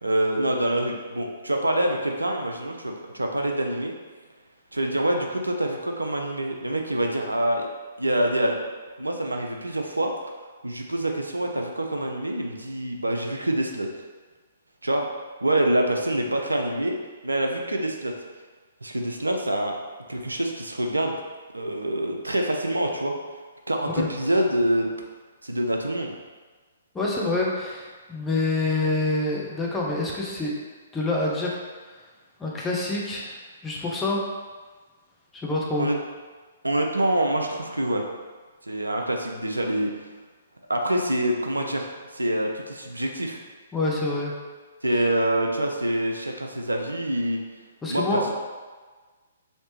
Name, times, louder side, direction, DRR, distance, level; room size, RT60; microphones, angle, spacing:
voice 1, 0.0-3.9 4.7-7.7 8.0-8.6 9.0-10.1 10.6-13.9 14.8-15.1 15.4-17.0 17.2-18.1 18.8-19.8 20.1-21.1 21.5-23.1 23.7-24.9 25.4-26.1 35.8-36.0 36.6-38.0 38.7-39.9 40.7-41.9 42.1-43.4 44.8-47.4 47.9-48.3, right 1 dB, 80° right, 2 dB, 0.4 m, -25 dB
voice 2, 26.9-30.6 30.9-31.6 32.4-33.4 33.6-34.3 35.3-35.9 43.7-44.3 47.8-48.3, left 2 dB, 10° left, -4 dB, 0.6 m, -26 dB
3.2 x 2.8 x 2.9 m, 1.4 s
figure-of-eight pair, 125°, 0 cm